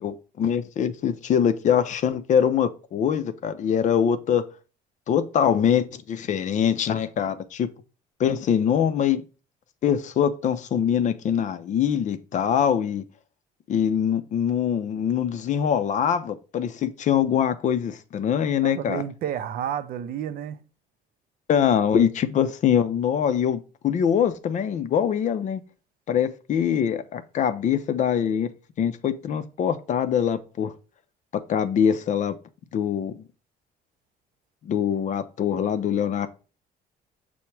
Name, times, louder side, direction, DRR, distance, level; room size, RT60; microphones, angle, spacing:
voice 1, 0.0-4.5 5.1-7.7 8.2-9.2 9.8-13.0 13.7-19.0 21.5-25.6 26.1-28.5 28.8-30.7 31.3-32.4 32.7-33.2 34.6-36.3, left 8 dB, 45° left, 0.4 m, -23 dB
voice 2, 18.6-20.6, right 10 dB, 60° right, 0.5 m, -31 dB
5.6 x 2.1 x 4.4 m
cardioid pair, 110°, 17 cm